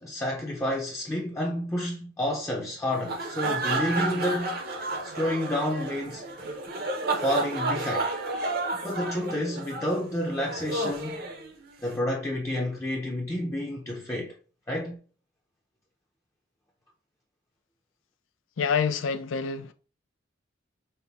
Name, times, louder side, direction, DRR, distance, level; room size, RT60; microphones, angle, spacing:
voice 1, 0.0-4.6 5.0-6.2 7.1-8.1 8.8-11.3 11.8-14.3 14.7-15.0, left 1 dB, 15° left, 0.5 m, -30 dB
sound 1, 2.9-11.9, right 2 dB, 50° right, 0.7 m, -31 dB
voice 2, 18.6-19.7, left 6 dB, 85° left, 0.5 m, -27 dB
5.5 x 2.1 x 3.4 m
head